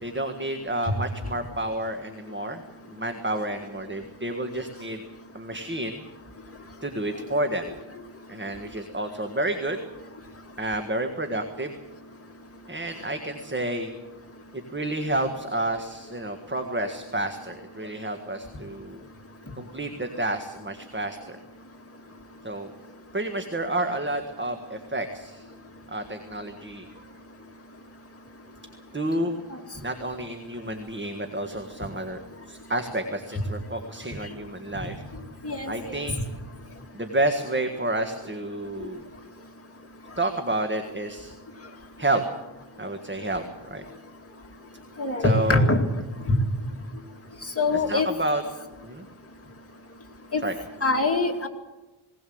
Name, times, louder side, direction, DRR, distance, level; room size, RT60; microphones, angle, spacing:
voice 1, 0.0-2.6 2.9-5.0 5.3-6.0 6.8-7.7 8.3-9.8 10.6-11.7 12.7-13.9 14.7-19.0 19.6-21.4 22.4-22.7 23.1-25.5 25.9-26.9 28.9-29.4 29.8-32.2 32.5-35.0 35.6-36.1 36.9-39.0 40.2-41.3 42.0-42.2 42.8-43.4 43.7-43.8 45.2-45.7 47.7-48.4 48.8-49.1 50.4-50.6, right 1 dB, 25° right, 5 dB, 1.7 m, -30 dB
voice 2, 35.4-36.0 38.8-38.9 45.0-45.9 46.3-46.4 47.6-48.1 50.3-50.4 50.8-51.5, left 2 dB, 30° left, 2 dB, 2.5 m, -23 dB
19.5 x 18.0 x 7.9 m, 1.1 s
wide cardioid pair, 90°, 48 cm